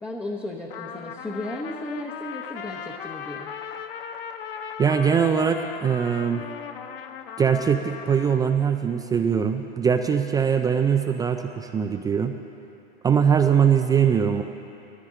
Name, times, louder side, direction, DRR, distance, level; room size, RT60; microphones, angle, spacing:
voice 1, 0.0-3.5, left 1 dB, 5° left, -1 dB, 1.0 m, -34 dB
Trumpet, 0.7-8.6, left 7 dB, 65° left, 1.0 m, -38 dB
voice 2, 4.8-6.4 7.4-12.3 13.0-14.4, right 7 dB, 15° right, 6 dB, 0.4 m, -21 dB
19.5 x 14.5 x 3.8 m, 2.8 s
hypercardioid pair, 120°, 30 cm